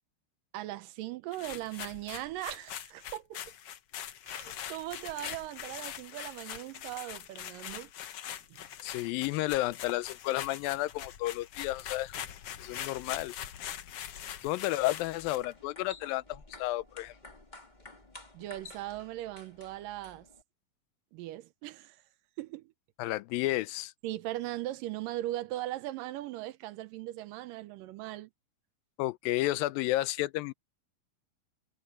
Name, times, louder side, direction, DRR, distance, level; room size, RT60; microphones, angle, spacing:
voice 1, 0.5-3.4 4.3-7.9 8.5-8.6 18.3-20.3 21.1-22.0 22.4-22.7 24.0-28.3, right 15 dB, 80° right, 2.3 m, -39 dB
sound 1, 1.3-15.5, left 10 dB, 65° left, 1.5 m, -43 dB
voice 2, 8.8-12.1 12.6-13.3 14.4-17.2 23.0-23.9 29.0-30.5, left 17 dB, 90° left, 2.4 m, -32 dB
sound 2, 15.0-20.4, left 2 dB, 15° left, 1.9 m, -52 dB
omnidirectional pair, 4.0 m